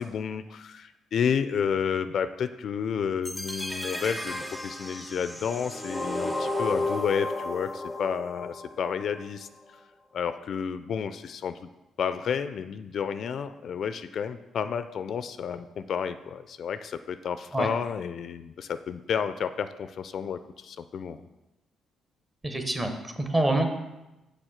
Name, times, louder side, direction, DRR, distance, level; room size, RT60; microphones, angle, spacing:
voice 1, 0.0-9.5 10.1-11.7 12.0-21.2, left 7 dB, 60° left, 11 dB, 0.3 m, -31 dB
sound 1, 3.2-9.3, left 2 dB, ahead, 0.5 m, -33 dB
voice 2, 22.4-23.7, right 1 dB, 20° right, 5 dB, 0.9 m, -26 dB
6.4 x 3.9 x 6.3 m, 0.99 s
cardioid pair, 90°, 0 cm